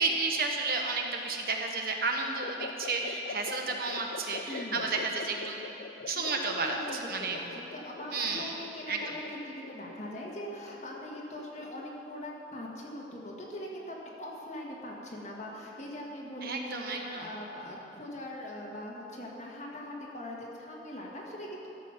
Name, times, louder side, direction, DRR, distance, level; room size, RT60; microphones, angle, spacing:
voice 1, 0.0-5.6 6.1-6.8 7.1-7.4 8.1-8.5 8.9-9.1 16.4-17.3, right 3 dB, 55° right, 2 dB, 1.0 m, -32 dB
sound 1, 2.4-12.0, left 5 dB, 90° left, 0.4 m, -44 dB
voice 2, 4.5-4.9 5.9-21.7, left 1 dB, 40° left, -2 dB, 1.6 m, -41 dB
13.5 x 7.2 x 5.8 m, 3.0 s
head